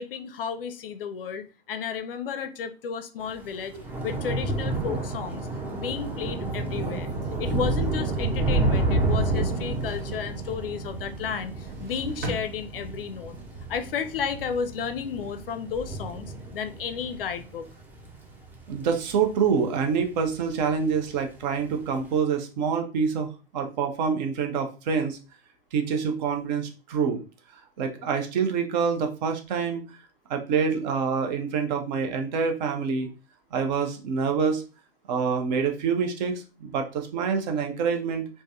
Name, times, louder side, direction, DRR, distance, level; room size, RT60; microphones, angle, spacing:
voice 1, 0.0-3.7 4.0-7.1 7.4-13.4 13.7-17.7, left 7 dB, 65° left, 10 dB, 0.5 m, -33 dB
Thunder / Rain, 3.3-19.9 20.2-20.7 20.9-21.1, right 2 dB, 5° right, 0.4 m, -30 dB
sound 1, 6.5-9.2 9.4-10.3 11.4-13.2 13.6-14.2, right 2 dB, 60° right, 1.1 m, -41 dB
voice 2, 18.7-25.2 25.7-27.2 27.8-29.8 30.3-33.1 33.5-34.6 35.1-38.3, right 6 dB, 45° right, 5 dB, 0.7 m, -26 dB
3.3 x 2.1 x 2.7 m, 0.32 s
figure-of-eight pair, 100°, 31 cm